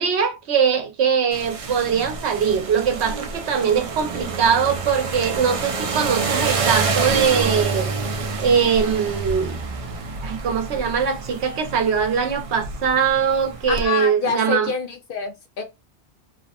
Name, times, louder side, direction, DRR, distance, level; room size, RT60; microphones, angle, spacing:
voice 1, 0.0-7.9 8.4-9.6 10.2-14.7, right 6 dB, 70° right, 0.9 m, -21 dB
sound 1, 1.3-13.9, right 4 dB, 55° right, 0.3 m, -27 dB
voice 2, 13.7-15.6, left 5 dB, 60° left, 0.6 m, -26 dB
3.2 x 2.0 x 2.7 m
omnidirectional pair, 1.2 m